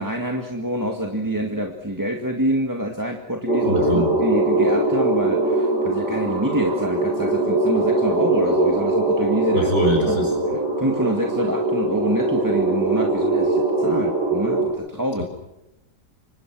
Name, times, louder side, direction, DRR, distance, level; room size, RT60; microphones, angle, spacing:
voice 1, 0.0-9.7 10.1-10.2 10.8-15.2, right 1 dB, 10° right, 2 dB, 1.9 m, -26 dB
sound 1, 3.5-14.7, right 2 dB, 85° left, 8.9 m, -21 dB
voice 2, 3.6-4.1 9.5-10.3 15.2-15.3, left 1 dB, 45° left, 1 dB, 7.5 m, -23 dB
28.0 x 26.0 x 6.2 m, 0.92 s
omnidirectional pair, 1.8 m